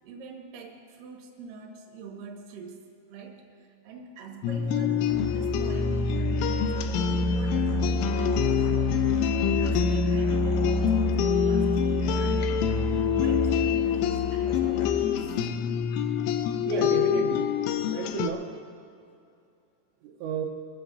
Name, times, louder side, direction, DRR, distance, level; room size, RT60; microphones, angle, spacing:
voice 1, 0.0-9.1 9.5-12.7 13.0-15.2 18.2-18.3, right 5 dB, 60° right, 1 dB, 2.7 m, -44 dB
sound 1, 4.4-18.3, left 9 dB, 85° left, 3.2 m, -26 dB
Musical instrument, 5.1-15.2, right 2 dB, 70° left, 3.9 m, -30 dB
voice 2, 16.7-17.6 17.9-18.5 20.0-20.4, right 6 dB, 75° right, -1 dB, 2.9 m, -31 dB
23.5 x 15.0 x 2.7 m, 2.5 s
omnidirectional pair, 5.5 m